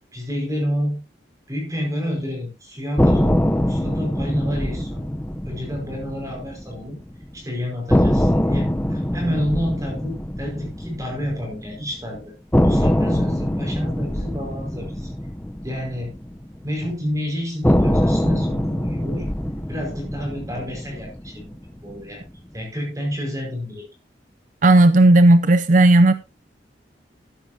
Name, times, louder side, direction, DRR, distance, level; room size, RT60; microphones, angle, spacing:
voice 1, 0.1-1.0 1.5-7.0 7.3-12.3 12.6-15.1 15.6-16.1 16.6-19.3 19.7-21.5 21.8-22.2 22.5-23.9, equal, 20° right, 5.1 m, -29 dB
sound 1, 3.0-7.1 7.3-7.4 7.9-12.0 12.5-16.9 17.6-22.0, equal, 10° left, 0.7 m, -23 dB
voice 2, 24.6-26.1, right 2 dB, 45° right, 0.6 m, -13 dB
13.5 x 10.5 x 2.8 m
head